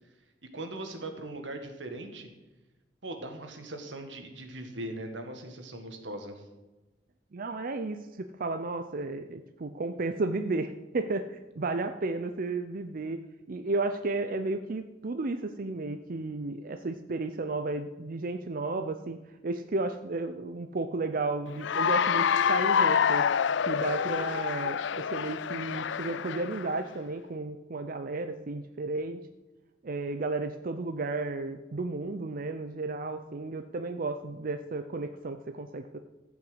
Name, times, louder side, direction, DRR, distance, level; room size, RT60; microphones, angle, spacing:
voice 1, 0.5-2.3 3.0-6.4, right 1 dB, 90° right, 5 dB, 1.8 m, -40 dB
voice 2, 7.3-13.2 13.5-19.2 19.4-23.3 23.7-29.2 29.8-36.0, right 3 dB, 50° right, 8 dB, 0.6 m, -33 dB
Cheering / Applause, 21.6-26.7, left 7 dB, 80° left, 0.4 m, -27 dB
14.0 x 6.0 x 7.9 m, 1.1 s
head